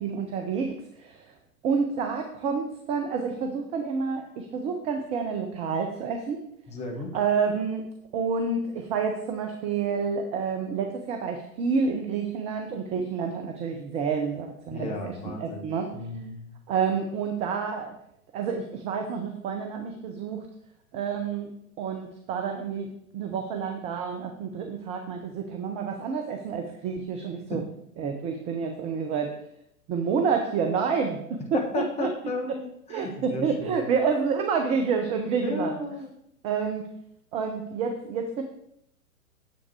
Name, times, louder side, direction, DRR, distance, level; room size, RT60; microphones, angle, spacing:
voice 1, 0.0-1.3 1.6-6.4 7.1-7.9 8.1-15.9 16.7-17.9 18.3-20.5 20.9-21.5 21.8-27.6 28.0-29.3 29.9-31.2 31.5-31.6 32.0-32.1 32.9-35.8 36.4-36.9 37.3-38.4, right 5 dB, 15° right, 4 dB, 0.6 m, -29 dB
voice 2, 6.7-7.2 14.7-15.6 15.9-16.4 27.5-27.6 31.5-33.8 35.4-36.1, left 2 dB, 15° left, 2 dB, 1.5 m, -33 dB
9.6 x 7.1 x 4.7 m, 0.74 s
figure-of-eight pair, 110°, 43 cm